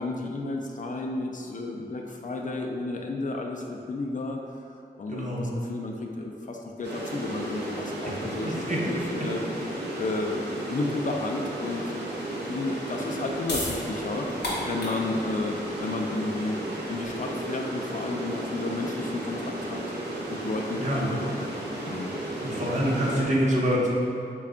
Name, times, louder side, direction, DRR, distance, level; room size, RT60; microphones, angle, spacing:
voice 1, 0.0-4.4 4.9-9.4 10.0-14.3 14.6-15.6 15.8-16.6 16.9-19.8 20.3-21.3 21.6-22.1, left 3 dB, 50° left, 1 dB, 0.4 m, -32 dB
voice 2, 5.1-5.4 8.4-8.8 20.8-21.0 22.4-23.9, equal, 45° right, -5 dB, 0.8 m, -26 dB
sound 1, 6.8-23.2, right 1 dB, 85° right, 0.6 m, -34 dB
sound 2, 13.4-19.8, left 1 dB, 75° left, 0.8 m, -37 dB
3.2 x 2.3 x 3.7 m, 2.5 s
cardioid pair, 40°, 17 cm